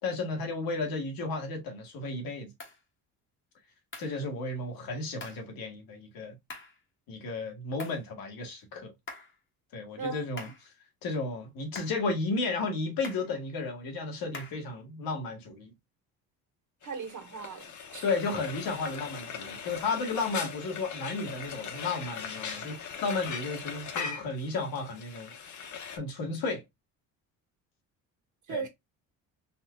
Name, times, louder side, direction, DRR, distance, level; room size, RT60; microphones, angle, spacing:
voice 1, 0.0-2.5 4.0-6.3 7.1-8.9 9.7-10.7 11.0-15.7 18.0-25.3 25.7-26.6 28.5-28.6, left 3 dB, 65° left, 1.6 m, -33 dB
sound 1, 2.6-2.8 3.9-4.2 5.2-5.5 6.5-6.8 7.8-8.1 9.1-9.4 10.4-10.7 11.7-12.0 13.0-13.3 14.3-14.7, left 3 dB, 30° left, 1.2 m, -44 dB
Frying (food), 16.8-26.0, left 6 dB, 50° left, 0.9 m, -40 dB
voice 2, 16.8-17.6 17.9-18.0 28.5-28.7, right 5 dB, 50° right, 1.5 m, -36 dB
4.3 x 2.5 x 2.4 m
supercardioid pair, 80°, 38 cm